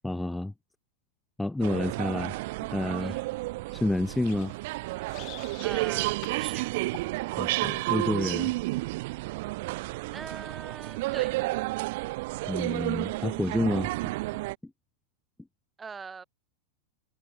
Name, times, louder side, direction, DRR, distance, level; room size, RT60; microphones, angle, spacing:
voice 1, 0.0-0.5 1.4-2.3 2.7-3.2 3.7-4.5 7.4-8.5 12.5-14.1 14.6-14.7, left 2 dB, 5° left, 1.3 m, -29 dB
sound 1, 1.6-14.5, right 21 dB, 50° right, 0.6 m, -31 dB
sound 2, 4.0-5.9 6.2-6.4 6.9-7.1, left 22 dB, 40° left, 5.8 m, -47 dB
voice 2, 5.6-6.6 10.1-11.3 15.8-16.2, right 5 dB, 15° right, 3.0 m, -42 dB
figure-of-eight pair, 90°, 0 cm